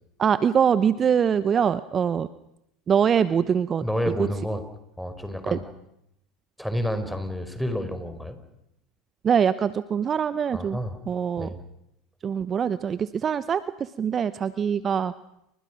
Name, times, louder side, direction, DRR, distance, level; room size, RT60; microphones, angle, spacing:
voice 1, 0.2-2.3 2.9-3.8 5.5-5.6 9.2-10.8 11.1-11.5 12.2-15.1, right 7 dB, 35° right, 15 dB, 0.9 m, -23 dB
voice 2, 3.8-4.6 5.0-5.6 6.6-8.4 10.5-11.0 11.4-11.6, equal, ahead, 9 dB, 4.6 m, -29 dB
29.5 x 25.0 x 6.1 m, 0.82 s
hypercardioid pair, 80°, 0 cm